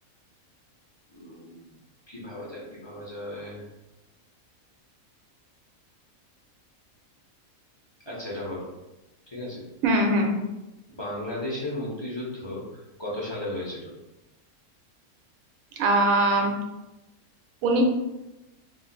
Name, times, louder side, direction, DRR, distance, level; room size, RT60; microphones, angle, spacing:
voice 1, 1.1-1.7 2.1-3.6 8.1-8.7 9.3-9.6 10.9-13.9, left 1 dB, 30° left, -7 dB, 0.5 m, -35 dB
voice 2, 9.8-10.3 15.8-16.5 17.6-17.8, right 1 dB, 75° right, 3 dB, 1.0 m, -21 dB
2.5 x 2.5 x 3.8 m, 0.98 s
omnidirectional pair, 1.5 m